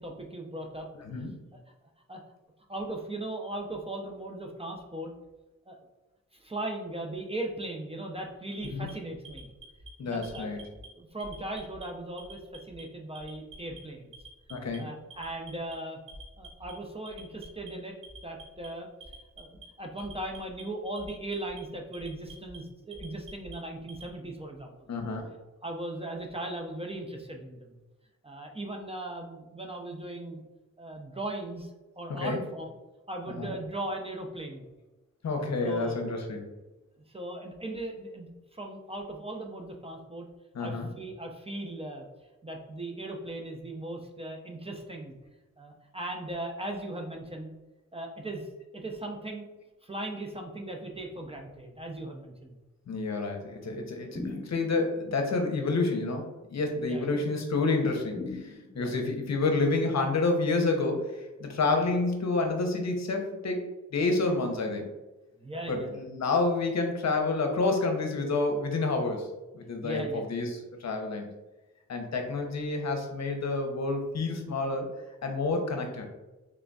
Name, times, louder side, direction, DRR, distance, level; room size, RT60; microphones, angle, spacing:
voice 1, 0.0-0.9 1.1-1.3 2.1-2.2 2.7-5.1 5.7-5.8 6.3-9.5 10.0-10.5 10.9-14.1 14.8-16.0 16.4-18.0 18.2-18.9 19.4-24.9 25.6-27.8 28.2-30.4 30.8-32.7 33.1-34.7 35.6-36.0 37.1-40.3 40.6-42.1 42.4-45.1 45.6-47.5 47.9-48.5 48.7-49.4 49.8-52.5 56.8-57.2 58.7-59.0 61.6-61.9 65.4-65.9 69.8-70.3, right 1 dB, 20° right, 1 dB, 0.5 m, -38 dB
Alarm, 8.6-9.9 10.2-10.9 11.2-11.8 12.2-12.8 13.1-13.8 14.1-14.8 15.1-15.7 16.1-16.7 17.1-17.7 18.0-18.7 19.0-19.6 20.0-20.6 21.0-21.6 21.9-22.6 22.9-24.1, right 3 dB, 85° right, 1.0 m, -47 dB
voice 2, 10.0-10.6 14.5-14.9 24.9-25.3 32.2-32.4 33.4-33.5 35.2-36.4 40.5-40.9 52.9-63.6 63.9-64.9 65.7-69.3 69.5-71.3 71.9-74.9 75.2-76.1, left 3 dB, 55° left, 3 dB, 0.7 m, -29 dB
sound 1, 54.2-55.0 58.2-59.1, left 2 dB, 30° left, 0.8 m, -39 dB
3.8 x 3.3 x 2.3 m, 1.1 s
cardioid pair, 80°, 31 cm